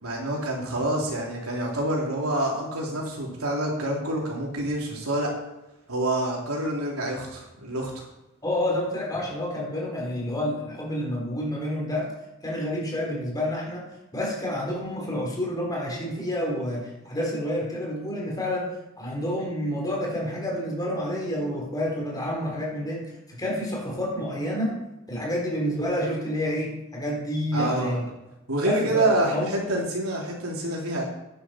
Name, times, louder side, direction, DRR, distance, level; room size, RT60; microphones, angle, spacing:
voice 1, 0.0-5.3 5.9-8.1 27.5-28.0 28.5-31.0, right 1 dB, 85° right, -2 dB, 3.6 m, -27 dB
voice 2, 8.4-12.1 12.4-13.8 14.1-18.7 19.0-23.0 23.4-24.7 25.1-28.0 28.6-29.6, left 1 dB, 20° left, -2 dB, 4.0 m, -29 dB
11.0 x 10.5 x 4.6 m, 0.96 s
head